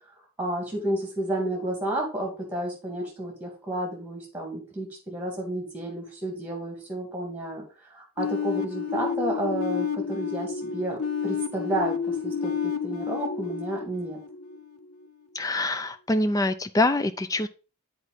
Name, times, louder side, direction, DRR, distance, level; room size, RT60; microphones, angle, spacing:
voice 1, 0.4-7.6 7.9-14.2, right 1 dB, 5° right, 0 dB, 2.3 m, -31 dB
sound 1, 8.2-14.9, left 6 dB, 75° left, 0.6 m, -30 dB
voice 2, 15.3-17.5, left 2 dB, 15° left, 12 dB, 0.4 m, -25 dB
8.0 x 4.5 x 3.9 m, 0.34 s
head